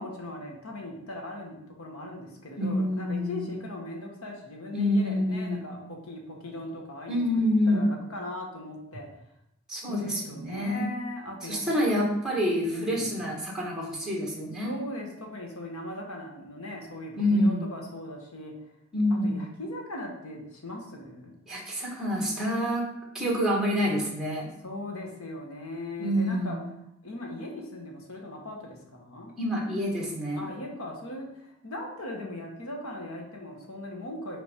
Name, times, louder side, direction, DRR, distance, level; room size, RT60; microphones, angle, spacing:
voice 1, 0.0-7.2 7.7-9.1 9.9-11.6 12.5-13.1 14.6-18.5 19.1-21.4 24.6-26.6 27.0-29.4 30.3-34.4, left 1 dB, 85° left, 1 dB, 1.5 m, -39 dB
voice 2, 2.6-3.5 4.7-5.6 7.1-7.9 9.7-10.9 11.4-14.7 17.2-17.7 18.9-19.4 21.5-22.9 23.1-24.5 26.0-26.6 29.4-30.5, equal, 5° right, -4 dB, 1.6 m, -27 dB
5.5 x 4.1 x 5.2 m, 0.82 s
head